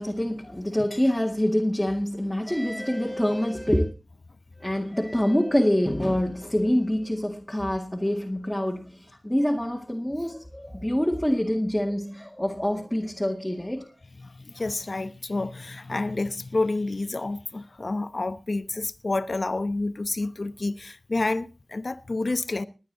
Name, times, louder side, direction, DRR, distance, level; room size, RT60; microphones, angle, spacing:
voice 1, 0.0-3.9 4.6-13.9, left 1 dB, 10° left, 1.9 m, -26 dB
voice 2, 14.2-22.7, left 2 dB, 55° left, 1.0 m, -29 dB
21.0 x 9.3 x 4.0 m
cardioid pair, 45°, 0 cm